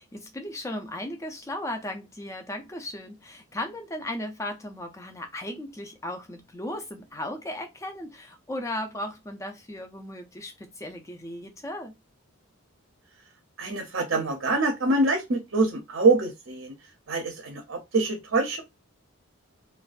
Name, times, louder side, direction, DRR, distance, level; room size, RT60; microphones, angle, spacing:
voice 1, 0.0-11.9, left 1 dB, 15° left, 0.3 m, -36 dB
voice 2, 13.6-16.7 17.1-18.6, right 3 dB, 60° right, 0.5 m, -25 dB
2.4 x 2.2 x 2.3 m
head